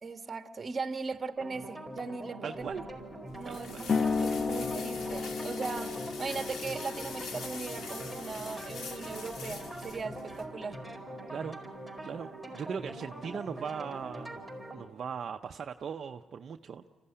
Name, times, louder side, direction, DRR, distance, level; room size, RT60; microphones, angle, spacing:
voice 1, 0.0-2.7 3.3-3.9 4.2-10.8, right 4 dB, 35° right, 8 dB, 1.3 m, -38 dB
sound 1, 1.4-14.8, right 1 dB, 5° left, 5.0 m, -43 dB
voice 2, 2.4-2.8 3.4-3.9 11.3-11.6 12.0-14.5 14.7-16.8, right 6 dB, 55° right, 5 dB, 0.6 m, -39 dB
sound 2, 2.6-10.5, left 4 dB, 70° left, 1.8 m, -45 dB
sound 3, 3.9-11.0, left 4 dB, 40° left, 0.9 m, -35 dB
25.5 x 15.5 x 9.9 m, 1.5 s
cardioid pair, 90°, 0 cm